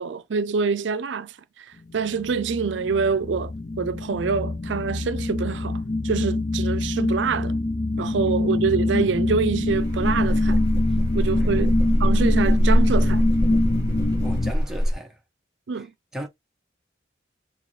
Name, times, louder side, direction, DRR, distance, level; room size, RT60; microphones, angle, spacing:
voice 1, 0.0-7.5 8.0-10.7 11.1-13.2 15.7-15.9, right 5 dB, 80° right, 0.5 m, -26 dB
sound 1, 2.0-14.5, left 2 dB, 40° left, 0.5 m, -25 dB
sound 2, 9.7-14.9, equal, 20° right, 2.9 m, -22 dB
voice 2, 11.2-11.7 14.2-15.2 15.7-15.9 16.1-16.3, right 1 dB, ahead, 0.9 m, -37 dB
6.7 x 2.3 x 3.2 m
head